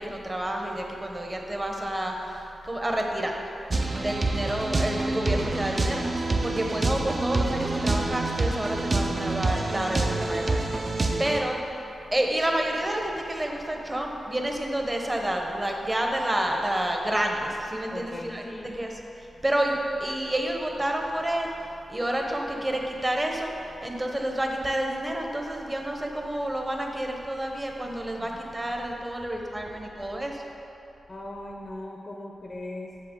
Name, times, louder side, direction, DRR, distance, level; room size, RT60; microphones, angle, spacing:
voice 1, 0.0-3.4 3.8-6.1 6.4-11.6 12.1-18.4 18.7-21.5 21.9-23.5 23.8-30.5, right 1 dB, 20° right, 1 dB, 0.9 m, -29 dB
sound 1, 3.7-11.4, right 2 dB, 40° right, 0.6 m, -27 dB
voice 2, 17.9-18.7 28.2-28.4 31.1-33.0, left 1 dB, 40° left, 0 dB, 0.6 m, -39 dB
7.6 x 6.9 x 3.7 m, 2.9 s
cardioid pair, 75°, 0 cm